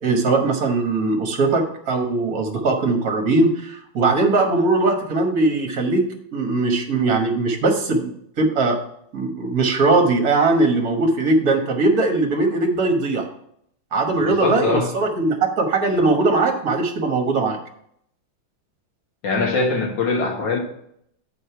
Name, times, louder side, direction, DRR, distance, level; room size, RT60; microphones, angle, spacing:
voice 1, 0.0-8.1 8.4-8.8 9.1-13.3 13.9-17.6, right 3 dB, 50° right, 3 dB, 1.6 m, -20 dB
voice 2, 14.2-15.0 19.2-20.6, left 3 dB, 65° left, 2 dB, 2.0 m, -22 dB
7.6 x 4.9 x 5.6 m, 0.71 s
omnidirectional pair, 2.2 m